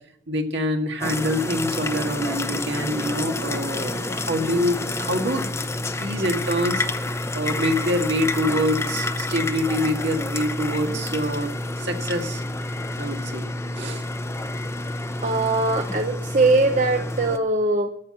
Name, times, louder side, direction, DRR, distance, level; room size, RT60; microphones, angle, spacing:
voice 1, 0.3-5.5 5.8-11.5 11.8-12.4 13.0-13.5 13.8-14.0, equal, 70° right, 3 dB, 1.9 m, -26 dB
sound 1, 1.0-17.4, left 2 dB, 15° left, 0.8 m, -29 dB
voice 2, 15.2-17.9, right 2 dB, 45° right, 5 dB, 0.8 m, -21 dB
14.0 x 6.0 x 9.8 m, 0.73 s
head